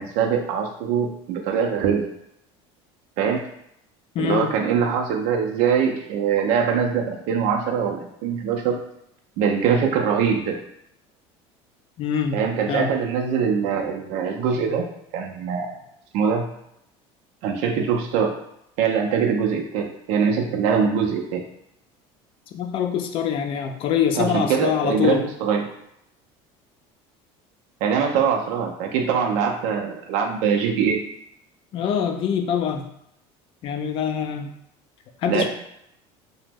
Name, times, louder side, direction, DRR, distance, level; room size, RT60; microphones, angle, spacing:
voice 1, 0.0-2.1 3.2-3.4 4.2-8.8 9.4-10.5 12.3-14.8 15.1-15.8 16.1-16.5 17.4-18.3 18.8-21.4 24.2-25.6 27.8-31.0 35.3-35.5, right 6 dB, 60° right, 2 dB, 0.4 m, -23 dB
voice 2, 4.2-4.5 12.0-12.4 12.7-12.9 22.5-25.2 31.7-32.8 33.6-34.5 35.2-35.5, left 8 dB, 40° left, 6 dB, 0.3 m, -24 dB
2.9 x 2.0 x 3.4 m, 0.76 s
cardioid pair, 150°, 14 cm